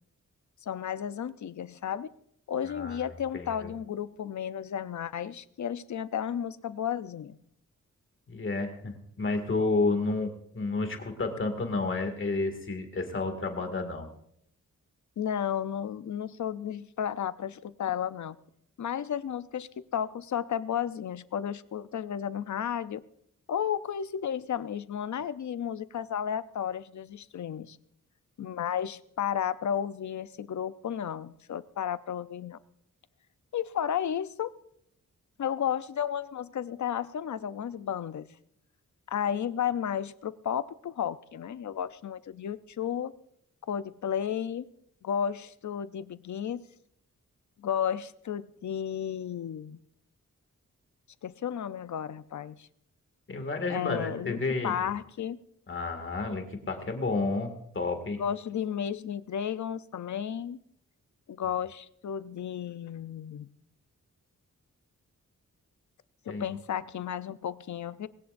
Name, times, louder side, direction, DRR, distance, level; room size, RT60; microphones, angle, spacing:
voice 1, 0.6-2.1 2.5-7.4 15.2-18.4 18.8-23.0 23.5-27.8 28.4-32.6 33.5-34.6 35.4-38.3 39.1-43.2 43.7-44.7 45.0-46.6 47.6-49.8 51.2-52.7 53.7-54.4 54.6-55.4 58.2-60.6 61.3-63.5 66.3-68.1, left 9 dB, 70° left, 14 dB, 0.7 m, -33 dB
voice 2, 2.6-3.1 3.3-3.7 8.3-14.1 53.3-54.7 55.7-58.2 66.3-66.5, left 3 dB, 40° left, 5 dB, 2.2 m, -31 dB
20.0 x 18.0 x 2.6 m, 0.73 s
wide cardioid pair, 175°, 31 cm